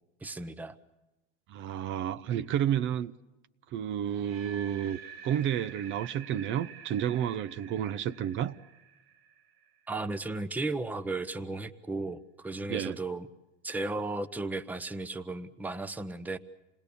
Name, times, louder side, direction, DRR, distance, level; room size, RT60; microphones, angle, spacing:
voice 1, 0.2-0.8 9.9-13.3 13.6-16.4, right 2 dB, 5° right, 0.9 m, -35 dB
voice 2, 1.5-3.1 3.7-8.6 12.7-13.0, right 10 dB, 40° right, 0.8 m, -31 dB
sound 1, 4.0-10.1, right 6 dB, 80° right, 1.7 m, -49 dB
28.0 x 20.0 x 6.9 m
supercardioid pair, 145°, 30 cm